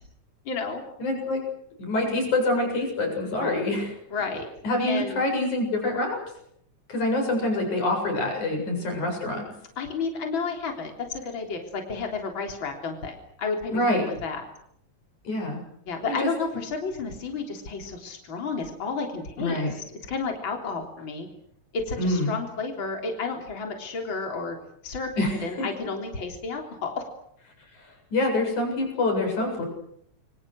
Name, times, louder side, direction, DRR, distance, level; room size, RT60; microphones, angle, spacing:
voice 1, 0.4-0.8 3.4-3.6 4.1-4.5 4.9-5.2 9.8-14.5 15.9-21.3 21.7-24.6 24.8-25.1 25.4-27.0, left 4 dB, 40° left, 3 dB, 4.2 m, -31 dB
voice 2, 1.0-1.4 1.8-3.9 4.6-6.2 6.9-9.4 13.7-14.0 15.3-15.6 16.1-16.2 19.4-19.7 22.0-22.3 25.2-25.7 28.1-29.6, left 2 dB, 85° left, 3 dB, 9.0 m, -26 dB
28.0 x 25.0 x 6.5 m, 0.71 s
omnidirectional pair, 3.3 m